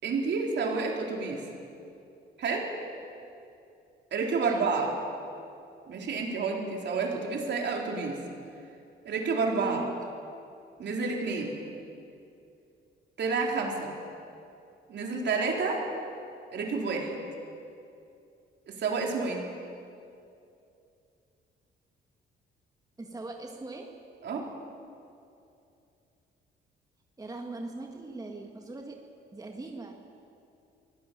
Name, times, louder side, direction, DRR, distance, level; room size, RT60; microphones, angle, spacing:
voice 1, 0.0-1.4 2.4-2.7 4.1-4.9 5.9-8.2 9.1-9.8 10.8-11.5 13.2-13.9 14.9-15.9 16.5-17.2 18.7-19.5 24.2-24.5, right 4 dB, 60° right, 0 dB, 3.9 m, -29 dB
voice 2, 4.4-4.7 9.5-10.0 23.0-24.0 27.2-29.0 29.3-30.0, right 3 dB, 20° right, 2 dB, 1.8 m, -40 dB
24.0 x 17.5 x 7.0 m, 2.6 s
cardioid pair, 90°, 20 cm